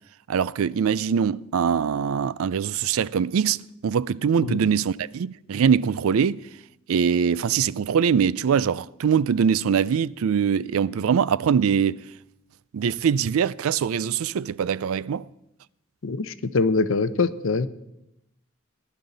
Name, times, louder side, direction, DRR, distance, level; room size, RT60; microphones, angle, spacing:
voice 1, 0.3-6.4 6.9-12.0 12.7-15.2, right 7 dB, 75° right, 0.4 m, -23 dB
voice 2, 16.0-17.7, left 4 dB, 65° left, 0.7 m, -24 dB
18.5 x 11.5 x 4.0 m
head